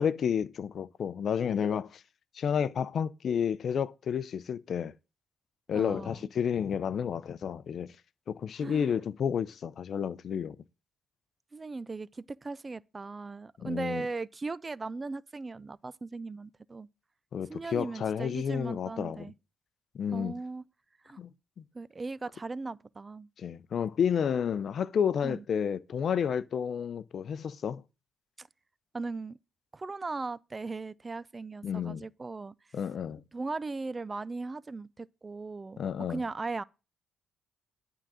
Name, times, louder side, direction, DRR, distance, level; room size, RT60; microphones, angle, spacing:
voice 1, 0.0-1.9 2.4-4.9 5.7-7.9 8.3-10.6 13.6-14.0 17.3-19.3 19.9-20.4 21.2-21.3 23.4-27.8 31.6-32.0 32.7-33.2 35.8-36.2, left 7 dB, 55° left, 0.6 m, -31 dB
voice 2, 5.7-6.2 8.6-8.9 11.5-16.9 17.5-19.3 20.1-20.6 21.0-21.2 21.7-23.3 25.2-25.4 28.4-28.5 28.9-29.4 29.7-32.5 33.3-35.8 36.1-36.6, right 3 dB, 25° right, 0.4 m, -38 dB
11.5 x 3.9 x 7.5 m
cardioid pair, 90°, 0 cm